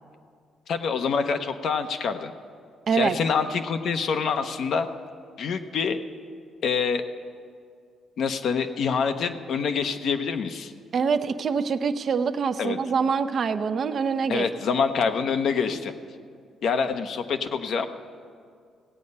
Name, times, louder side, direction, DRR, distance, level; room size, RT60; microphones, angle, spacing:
voice 1, 0.7-2.3 2.9-4.9 5.4-6.0 6.6-7.0 8.2-10.7 12.6-12.8 14.3-15.9 16.6-17.9, left 5 dB, 65° left, 8 dB, 0.8 m, -26 dB
voice 2, 10.9-14.5, right 6 dB, 55° right, 10 dB, 0.6 m, -25 dB
17.0 x 8.4 x 5.4 m, 2.2 s
cardioid pair, 90°, 0 cm